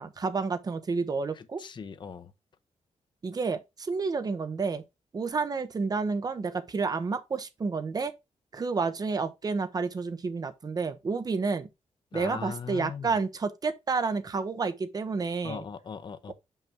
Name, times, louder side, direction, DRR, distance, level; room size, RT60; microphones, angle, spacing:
voice 1, 0.0-1.6 3.2-4.8 5.1-8.1 8.5-11.7 12.1-15.6, right 4 dB, 30° right, 0.8 m, -30 dB
voice 2, 1.4-2.3 12.1-13.1 15.4-16.3, left 6 dB, 40° left, 0.7 m, -39 dB
5.9 x 5.5 x 3.4 m
wide cardioid pair, 175°, 12 cm